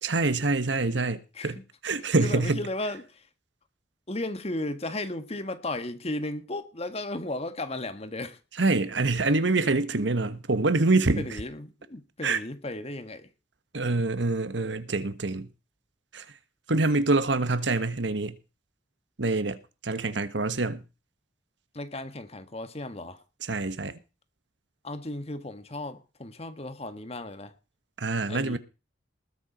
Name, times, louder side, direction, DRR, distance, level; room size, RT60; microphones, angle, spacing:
voice 1, 0.0-1.6 1.8-2.6 8.6-11.3 12.2-12.4 13.7-15.5 16.1-16.2 16.7-18.4 19.2-19.6 19.8-20.8 23.5-24.0 28.0-28.6, right 3 dB, 75° right, 1.3 m, -25 dB
voice 2, 2.2-3.3 4.1-8.4 11.2-13.3 21.7-23.2 24.8-27.5 28.3-28.6, left 2 dB, 35° left, 1.5 m, -35 dB
19.5 x 7.2 x 5.2 m
head